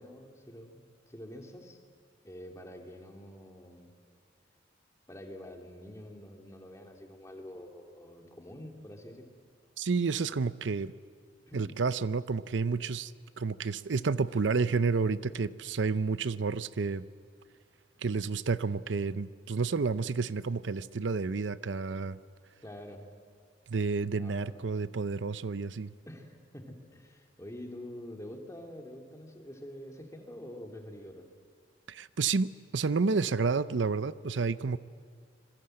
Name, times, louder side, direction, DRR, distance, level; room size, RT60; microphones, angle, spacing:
voice 1, 0.0-1.8 2.2-3.9 5.1-9.3 11.5-11.8 22.6-23.1 24.1-24.7 26.1-31.3, left 1 dB, 15° left, 3 dB, 2.6 m, -46 dB
voice 2, 9.8-10.9 11.5-13.1 13.4-17.0 18.0-22.2 23.7-25.9 31.9-34.8, right 4 dB, 90° right, 16 dB, 0.6 m, -30 dB
26.5 x 21.5 x 7.7 m, 2.1 s
head